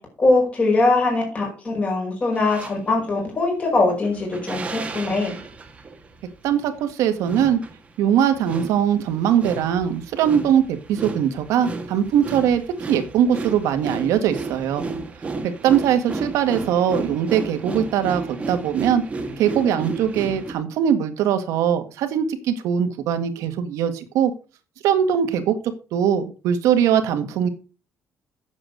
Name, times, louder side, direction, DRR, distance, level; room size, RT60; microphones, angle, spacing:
voice 1, 0.2-5.4, left 2 dB, 25° left, 0 dB, 5.2 m, -21 dB
sound 1, 2.3-2.8 3.6-20.5, right 3 dB, 25° right, 1.7 m, -33 dB
voice 2, 6.4-7.6 8.0-12.6 12.9-14.8 15.4-19.0 19.4-24.3 24.8-25.6 25.9-27.5, right 9 dB, 85° right, 8 dB, 1.8 m, -21 dB
9.0 x 7.4 x 6.6 m, 0.36 s
cardioid pair, 145°, 5 cm